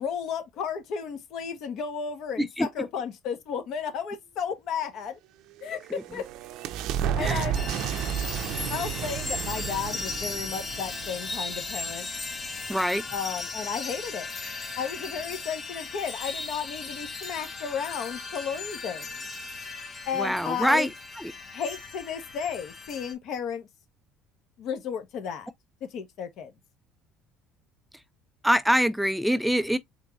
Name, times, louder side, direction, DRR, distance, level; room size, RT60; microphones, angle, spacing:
voice 1, 0.0-5.2 5.6-6.3 7.2-7.6 8.7-12.1 13.1-14.3 14.8-19.1 20.1-20.9 21.5-23.7 24.6-25.5 25.8-26.5, left 7 dB, 60° left, 1.4 m, -33 dB
sound 1, 5.5-11.9, right 9 dB, 70° right, 0.6 m, -32 dB
sound 2, 7.5-23.1, left 3 dB, 25° left, 2.4 m, -37 dB
voice 2, 12.7-13.0 20.1-21.3 28.4-29.8, equal, ahead, 0.4 m, -25 dB
4.5 x 3.5 x 2.6 m
supercardioid pair, 100°, 0 cm